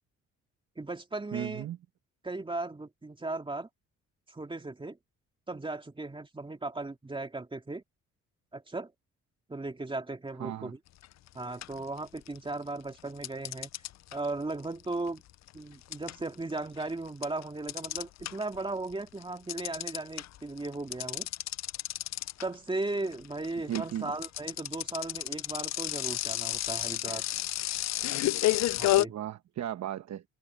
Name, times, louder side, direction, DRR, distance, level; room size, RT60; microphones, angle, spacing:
voice 1, 0.8-1.7 2.2-3.7 4.3-5.0 5.5-7.8 8.5-8.9 9.5-10.8 11.3-13.7 14.1-15.2 15.5-21.3 22.4-27.2 28.8-29.1, right 2 dB, 15° right, 2.3 m, -36 dB
voice 2, 1.3-1.8 10.4-10.7 23.7-24.1 29.1-30.2, right 11 dB, 65° right, 1.1 m, -35 dB
sound 1, 11.0-11.3 11.6-12.5 13.2-18.6 18.9-29.0, left 15 dB, 60° left, 0.5 m, -31 dB
cardioid pair, 90°, 30 cm